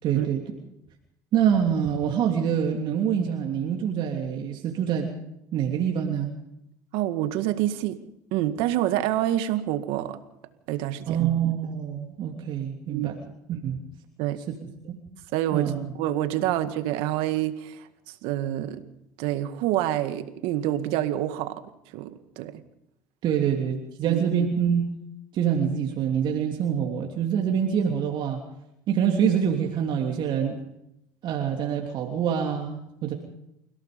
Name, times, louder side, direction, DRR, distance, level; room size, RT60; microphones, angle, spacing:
voice 1, 0.0-0.4 1.3-5.1 5.5-6.3 11.1-13.2 13.5-13.8 14.8-15.0 15.5-15.9 23.2-24.9 25.3-28.4 28.9-30.6 31.2-33.1, right 8 dB, 55° right, 1 dB, 3.1 m, -25 dB
voice 2, 6.9-8.0 8.3-10.2 10.7-11.2 12.9-13.1 14.2-14.4 15.3-15.7 16.0-17.9 18.2-18.8 19.2-21.6 21.9-22.6 24.0-24.2, right 13 dB, 70° right, 9 dB, 2.0 m, -27 dB
29.5 x 17.0 x 5.3 m, 0.81 s
supercardioid pair, 85°, 9 cm